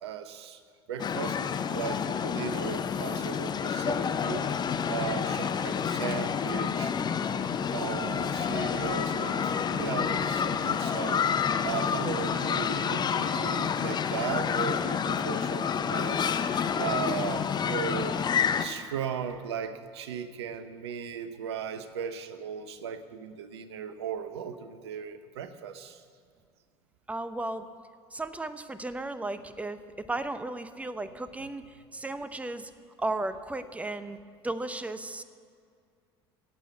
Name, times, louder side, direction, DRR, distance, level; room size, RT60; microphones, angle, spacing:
voice 1, 0.0-0.6 0.9-1.4 1.7-4.5 4.9-6.9 7.7-11.3 11.6-16.2 16.8-18.2 18.6-26.0, right 7 dB, 75° right, 11 dB, 0.9 m, -36 dB
sound 1, 1.0-18.7, left 7 dB, 30° left, 0.8 m, -29 dB
voice 2, 27.1-27.7 28.1-29.8 30.1-32.7 33.0-34.2 34.4-35.2, right 2 dB, 10° right, 12 dB, 0.8 m, -35 dB
15.5 x 8.5 x 8.0 m, 2.2 s
figure-of-eight pair, 70°, 14 cm